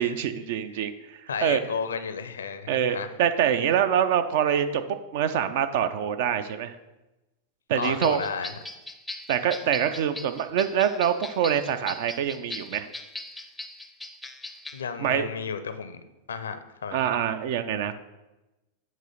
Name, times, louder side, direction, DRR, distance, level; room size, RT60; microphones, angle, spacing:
voice 1, 0.0-1.6 2.7-6.8 7.7-8.2 9.3-12.9 15.0-15.3 16.9-17.9, right 9 dB, 50° right, 10 dB, 0.4 m, -25 dB
voice 2, 1.3-3.1 7.7-8.5 14.7-16.0 16.3-17.1, left 6 dB, 70° left, 10 dB, 0.5 m, -33 dB
sound 1, 7.8-14.8, left 2 dB, 5° left, 0.5 m, -40 dB
7.4 x 3.1 x 5.6 m, 1.0 s
figure-of-eight pair, 90°, 0 cm